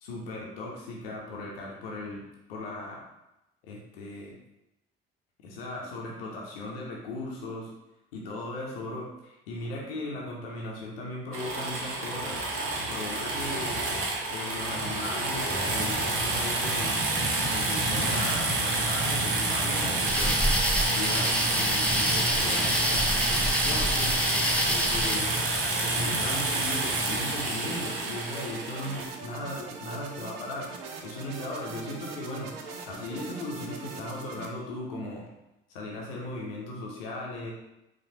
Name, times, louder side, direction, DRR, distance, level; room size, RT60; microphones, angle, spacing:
voice 1, 0.0-2.2 2.5-3.0 3.6-4.4 5.4-7.7 8.1-12.5 12.9-13.8 14.3-17.0 17.5-20.4 20.9-23.2 23.6-24.2 24.7-25.3 25.8-30.7 31.0-35.2 35.7-37.5, left 2 dB, 80° left, -2 dB, 0.7 m, -37 dB
sound 1, 11.3-29.1, right 2 dB, 45° right, 0.9 m, -28 dB
sound 2, 19.7-34.5, right 4 dB, 75° right, 0.5 m, -42 dB
sound 3, 20.1-25.2, left 1 dB, 5° left, 0.5 m, -28 dB
4.2 x 2.4 x 2.8 m, 0.90 s
figure-of-eight pair, 45°, 29 cm